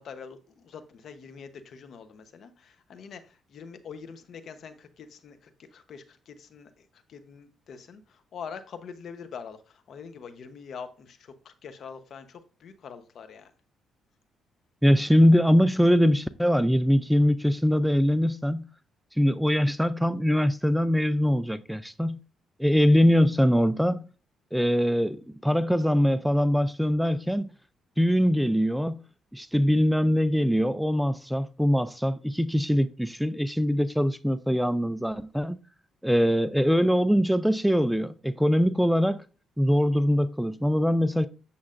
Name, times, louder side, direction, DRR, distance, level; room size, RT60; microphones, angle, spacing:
voice 1, 0.0-13.5, left 6 dB, 60° left, 0.9 m, -44 dB
voice 2, 14.8-18.7 19.2-22.2 22.6-24.0 24.5-27.5 28.0-29.0 29.3-35.6 36.0-39.3 39.6-41.3, equal, ahead, 0.4 m, -22 dB
8.5 x 7.0 x 2.6 m
cardioid pair, 90°, 0 cm